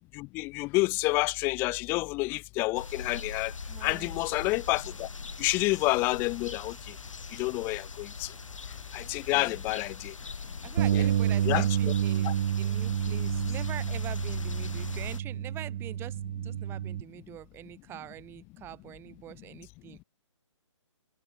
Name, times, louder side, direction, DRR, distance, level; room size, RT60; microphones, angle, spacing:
voice 1, 0.1-3.5 3.8-5.1 5.4-6.7 7.4-8.3 8.9-10.1 10.9-11.0 11.4-11.6 12.2-12.3, left 23 dB, 15° left, 0.4 m, -29 dB
sound 1, 2.7-15.2, left 4 dB, 80° left, 1.8 m, -40 dB
voice 2, 3.7-4.2 9.3-9.6 10.4-20.0, right 13 dB, 15° right, 1.3 m, -44 dB
Bass guitar, 10.8-17.0, right 10 dB, 45° right, 1.4 m, -29 dB
figure-of-eight pair, 140°, 16 cm